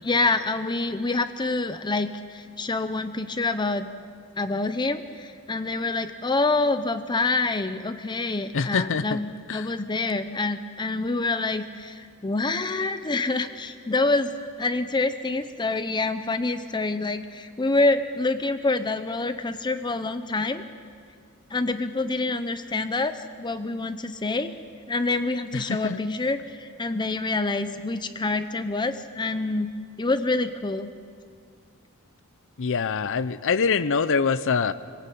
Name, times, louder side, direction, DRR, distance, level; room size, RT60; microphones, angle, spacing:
voice 1, 0.0-3.9 4.4-14.3 14.6-20.6 21.5-24.5 24.9-29.7 30.0-30.9, left 3 dB, 20° left, 10 dB, 0.7 m, -26 dB
voice 2, 8.5-9.2 9.5-9.8 25.5-26.0 32.6-34.7, left 5 dB, 60° left, 13 dB, 0.6 m, -24 dB
25.0 x 17.5 x 8.5 m, 2.2 s
head